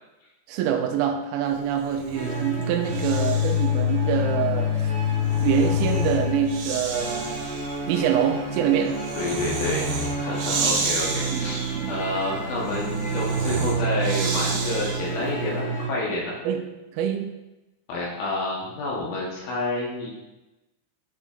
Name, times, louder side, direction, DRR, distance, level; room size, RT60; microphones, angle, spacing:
voice 1, 0.5-4.9 5.4-7.5 7.9-9.1 10.6-10.8 11.3-11.9 16.4-16.6 16.9-17.3, right 9 dB, 85° right, 3.1 m, -25 dB
Breathing, 1.8-3.7 5.0-15.2, right 3 dB, 70° right, 2.7 m, -32 dB
sound 1, 2.1-15.9, left 2 dB, 40° left, 1.6 m, -27 dB
voice 2, 9.1-11.6 11.9-16.4 17.9-20.1, left 2 dB, 75° left, 3.3 m, -29 dB
11.0 x 5.1 x 2.4 m
omnidirectional pair, 5.6 m